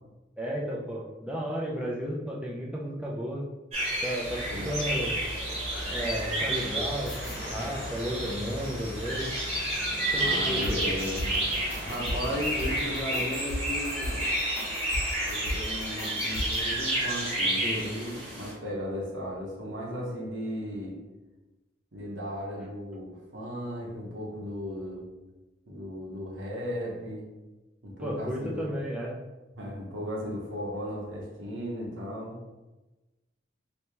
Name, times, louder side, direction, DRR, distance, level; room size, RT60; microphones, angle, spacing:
voice 1, 0.4-3.4 4.0-5.2 5.9-7.2 7.5-9.3 10.1-10.8 17.6-17.8 28.0-29.2, equal, 5° right, -3 dB, 0.4 m, -33 dB
sound 1, 3.7-18.5, right 1 dB, 35° right, 1.1 m, -31 dB
sound 2, 4.2-13.0, equal, 65° left, 0.6 m, -40 dB
sound 3, 7.0-7.7 10.6-16.6, equal, 85° left, 1.3 m, -36 dB
voice 2, 10.2-11.4 11.8-14.3 15.3-20.9 21.9-25.1 25.7-27.2 27.8-28.6 29.6-32.4, equal, 80° right, -3 dB, 0.9 m, -36 dB
3.0 x 2.8 x 3.4 m, 1.1 s
head